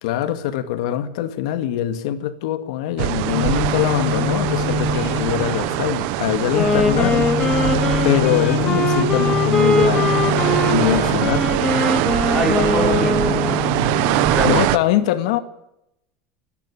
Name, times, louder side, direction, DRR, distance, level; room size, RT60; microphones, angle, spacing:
voice 1, 0.0-7.3 8.0-10.1 10.7-11.6 14.5-15.4, left 12 dB, 80° left, 2.1 m, -23 dB
sound 1, 3.0-14.8, right 16 dB, 55° right, 1.0 m, -22 dB
sound 2, 3.3-14.5, left 6 dB, 55° left, 6.7 m, -26 dB
Wind instrument woodwind instrument, 6.4-13.6, left 2 dB, 20° left, 3.0 m, -22 dB
voice 2, 12.3-13.9 14.3-14.6, right 1 dB, 10° right, 4.9 m, -25 dB
26.5 x 10.5 x 9.9 m
cardioid pair, 170°, 3 cm